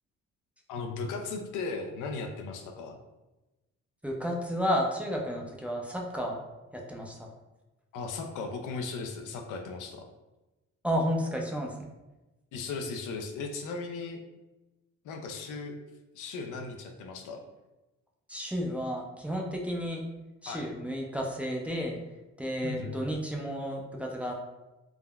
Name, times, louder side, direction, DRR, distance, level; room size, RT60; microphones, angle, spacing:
voice 1, 0.7-3.0 7.9-10.1 12.5-14.2 15.0-15.8 16.1-17.4 20.5-20.7 22.6-22.9, left 4 dB, 85° left, 3 dB, 0.5 m, -37 dB
voice 2, 4.0-6.4 6.7-7.3 10.8-11.9 18.3-20.1 20.4-22.0 22.4-24.3, equal, 5° right, -1 dB, 0.4 m, -32 dB
3.5 x 2.1 x 2.2 m, 1.1 s
cardioid pair, 90°, 30 cm